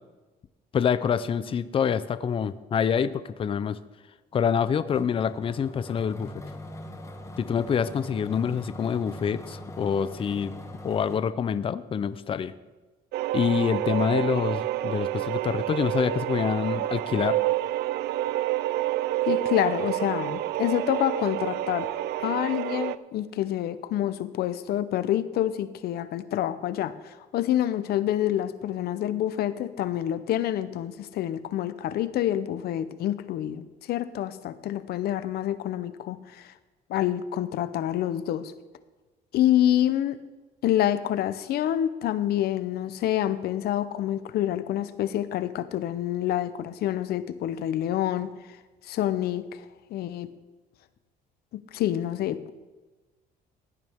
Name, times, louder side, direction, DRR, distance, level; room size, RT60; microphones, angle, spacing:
voice 1, 0.7-3.8 4.3-6.3 7.4-10.5 10.8-12.5 13.3-17.4, left 7 dB, 35° left, 15 dB, 0.5 m, -26 dB
sound 1, 4.9-11.2, left 1 dB, 15° left, 1.5 m, -42 dB
sound 2, 13.1-23.0, right 14 dB, 75° right, 0.4 m, -28 dB
voice 2, 19.3-21.9 22.2-36.5 36.9-38.5 39.3-40.2 40.6-48.3 48.8-49.6 49.9-50.3 51.7-52.5, left 12 dB, 70° left, 13 dB, 0.7 m, -27 dB
16.0 x 9.5 x 3.6 m, 1.2 s
cardioid pair, 110°, 17 cm